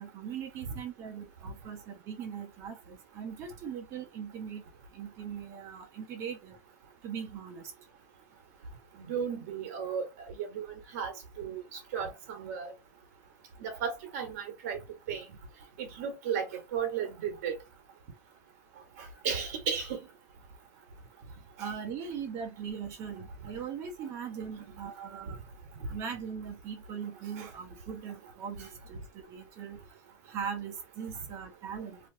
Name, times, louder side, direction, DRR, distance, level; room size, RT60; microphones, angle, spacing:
voice 1, 0.0-4.6 4.9-6.6 7.0-7.7 21.6-25.4 25.9-29.8 30.3-32.0, right 7 dB, 30° right, 0.9 m, -40 dB
voice 2, 8.9-10.0 10.4-10.6 10.9-12.7 13.6-14.8 15.1-15.2 15.8-17.5 19.2-20.0 27.4-27.5, right 7 dB, 55° right, 1.5 m, -34 dB
3.2 x 2.9 x 2.7 m
supercardioid pair, 165°, 9 cm